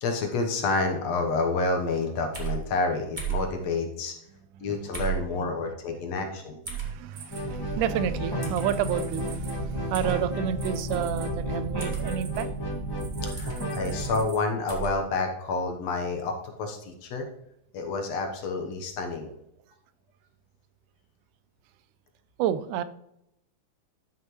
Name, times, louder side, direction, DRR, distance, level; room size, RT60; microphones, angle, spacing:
voice 1, 0.0-4.1 4.6-6.6 13.2-16.3 16.6-17.3 17.7-19.3, left 3 dB, 65° left, 4 dB, 2.0 m, -29 dB
sound 1, 2.3-2.6 3.2-3.5 4.9-5.2 6.6-6.9 8.4-8.6 9.9-10.2 11.8-12.0 13.4-13.6 14.7-14.9, right 8 dB, 20° right, 1.3 m, -32 dB
voice 2, 4.5-5.7 6.7-12.5 22.4-22.8, right 10 dB, 85° right, 13 dB, 2.1 m, -30 dB
sound 2, 7.1-8.0 8.5-12.4 13.0-14.4, right 7 dB, 65° right, 2.5 m, -46 dB
sound 3, 7.3-14.2, right 1 dB, 25° left, 0.5 m, -32 dB
12.5 x 5.8 x 3.0 m, 0.80 s
omnidirectional pair, 3.6 m